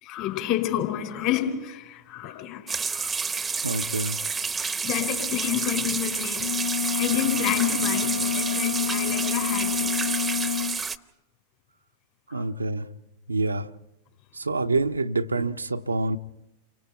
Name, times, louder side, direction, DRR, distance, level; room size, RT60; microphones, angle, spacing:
voice 1, 0.0-3.1 4.8-10.0 12.3-12.4, left 12 dB, 45° left, 4.4 m, -30 dB
sound 1, 2.7-11.0, right 5 dB, 15° right, 0.8 m, -29 dB
voice 2, 3.6-4.2 12.3-12.8 13.3-13.6 14.5-16.2, right 3 dB, 80° right, 0.7 m, -26 dB
sound 2, 6.4-10.8, left 8 dB, 70° left, 0.8 m, -28 dB
30.0 x 25.0 x 4.6 m
figure-of-eight pair, 90°, 0 cm